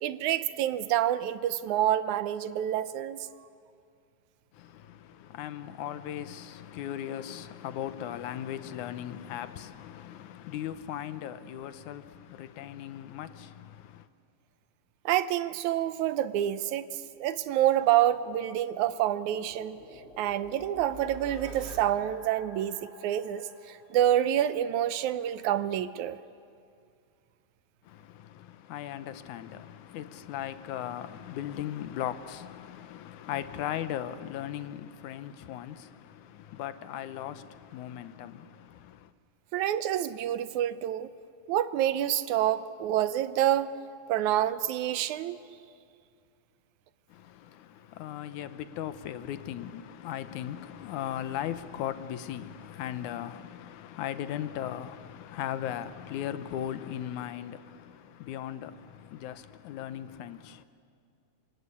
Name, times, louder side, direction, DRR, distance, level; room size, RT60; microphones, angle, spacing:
voice 1, 0.0-3.3 15.1-16.9 17.2-19.8 20.2-26.2 39.5-41.1 41.5-43.7 44.1-45.4, right 12 dB, 75° right, 2.1 m, -27 dB
voice 2, 4.5-14.1 27.8-39.1 47.1-60.6, left 11 dB, 75° left, 2.3 m, -38 dB
sound 1, 17.8-24.6, right 1 dB, 20° left, 2.5 m, -48 dB
27.5 x 25.0 x 8.4 m
omnidirectional pair, 3.5 m